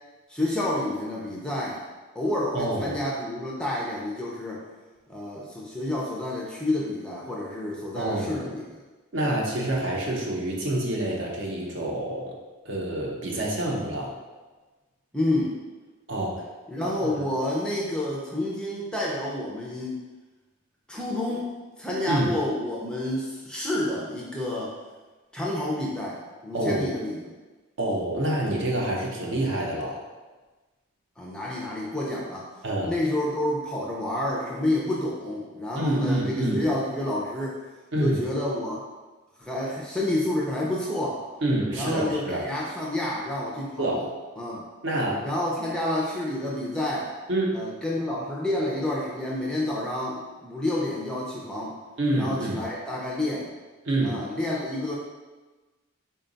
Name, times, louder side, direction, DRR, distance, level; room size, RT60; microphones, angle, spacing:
voice 1, 0.3-1.8 2.1-4.6 5.1-8.6 15.1-15.6 16.7-20.0 20.9-21.5 21.8-24.8 25.3-27.2 31.2-32.5 32.8-37.6 38.0-38.8 39.4-41.2 41.7-44.1 44.4-44.6 45.2-47.1 47.5-51.7 52.1-53.5 54.0-54.9, left 1 dB, 5° left, -4 dB, 0.4 m, -29 dB
voice 2, 2.5-3.0 8.0-8.5 9.1-12.3 12.6-14.2 16.1-16.5 22.1-22.3 26.5-26.9 27.8-30.0 32.6-32.9 35.8-36.6 37.9-38.2 41.4-42.5 43.8-44.1 44.8-45.3 47.3-47.7 52.0-52.6 53.8-54.2, right 1 dB, 55° right, -2 dB, 0.7 m, -27 dB
3.8 x 2.2 x 3.8 m, 1.2 s
head